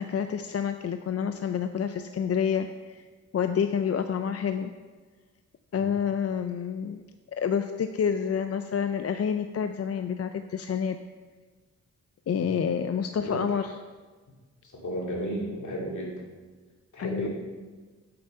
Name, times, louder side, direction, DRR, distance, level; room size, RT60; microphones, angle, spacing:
voice 1, 0.0-3.0 3.3-4.7 5.7-7.0 7.3-11.0 12.3-13.7 17.0-17.3, left 7 dB, 55° left, 8 dB, 0.4 m, -28 dB
voice 2, 14.6-16.1 16.9-17.3, equal, 70° left, -2 dB, 2.3 m, -33 dB
8.0 x 7.5 x 5.4 m, 1.4 s
wide cardioid pair, 105°, 30 cm